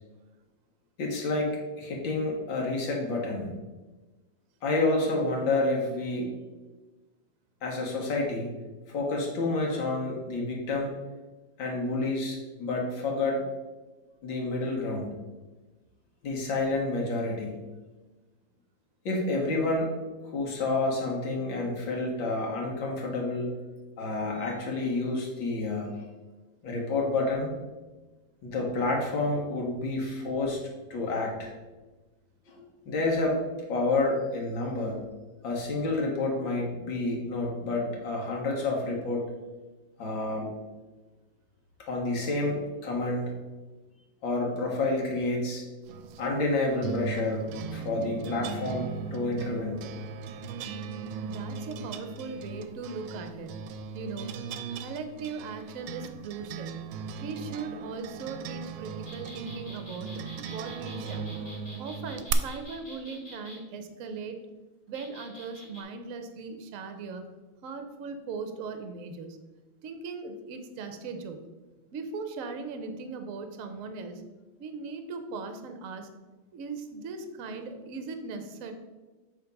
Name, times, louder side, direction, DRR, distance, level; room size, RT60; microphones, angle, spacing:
voice 1, 1.0-3.5 4.6-6.3 7.6-8.5 8.9-10.9 11.6-13.5 14.2-15.1 16.2-17.6 19.1-19.9 20.3-23.6 24.0-26.1 26.6-27.5 28.4-30.6 30.9-31.5 32.5-33.4 33.7-35.0 35.4-39.3 40.0-40.5 41.9-43.3 44.2-45.6 46.2-47.4 47.7-49.9, left 2 dB, 75° left, -1 dB, 2.1 m, -29 dB
sound 1, 45.9-62.3, right 6 dB, 85° right, 1.3 m, -38 dB
voice 2, 51.3-53.6 53.9-54.3 54.8-56.9 57.2-61.3 61.8-64.4 64.9-67.2 67.6-69.4 69.8-71.4 71.9-74.2 74.6-76.1 76.5-78.7, right 4 dB, 60° right, 8 dB, 0.9 m, -39 dB
sound 2, 59.1-63.6 64.9-65.8, equal, 15° left, 1.6 m, -47 dB
7.3 x 3.6 x 5.3 m, 1.2 s
omnidirectional pair, 2.1 m